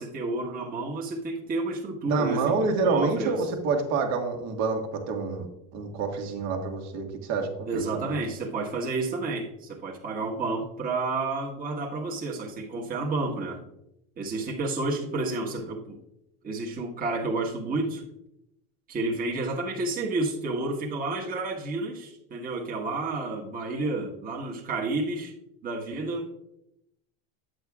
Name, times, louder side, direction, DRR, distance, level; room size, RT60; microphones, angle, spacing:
voice 1, 0.0-3.5 7.7-13.6 14.2-16.0 16.4-18.1 18.9-25.3 25.6-26.3, right 3 dB, 30° right, -3 dB, 1.4 m, -30 dB
voice 2, 2.0-5.5 5.7-8.2, right 4 dB, 60° right, 3 dB, 1.7 m, -28 dB
9.4 x 7.8 x 2.4 m, 0.85 s
supercardioid pair, 110°, 30 cm